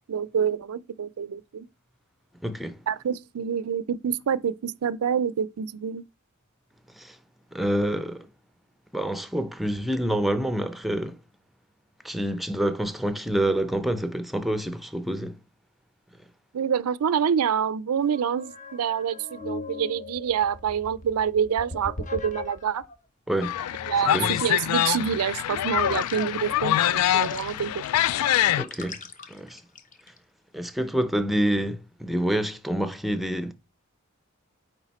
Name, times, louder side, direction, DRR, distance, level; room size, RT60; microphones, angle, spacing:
voice 1, 0.1-1.7 2.9-6.0 16.5-22.8 23.9-27.8, right 7 dB, 85° right, 0.4 m, -27 dB
voice 2, 2.4-2.8 7.0-7.2 7.5-8.3 8.9-11.2 12.0-15.4 23.3-23.6 24.1-24.4 28.6-29.0 29.3-29.6 30.5-33.5, right 1 dB, ahead, 0.6 m, -27 dB
sound 1, 18.0-23.0 23.5-30.2, left 4 dB, 35° left, 0.7 m, -40 dB
sound 2, 23.4-28.6, left 11 dB, 90° left, 0.3 m, -25 dB
8.9 x 3.5 x 4.2 m
head